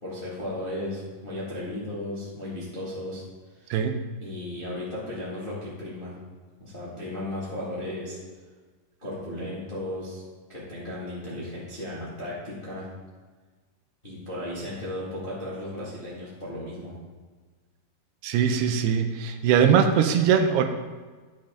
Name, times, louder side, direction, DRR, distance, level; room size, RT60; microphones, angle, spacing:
voice 1, 0.0-3.2 3.5-3.8 4.2-6.1 6.6-8.2 9.0-10.2 10.5-12.9 14.0-16.9, left 1 dB, 30° left, -8 dB, 1.0 m, -35 dB
voice 2, 18.2-20.7, right 7 dB, 90° right, 7 dB, 2.7 m, -21 dB
10.0 x 7.5 x 3.8 m, 1.4 s
omnidirectional pair, 4.6 m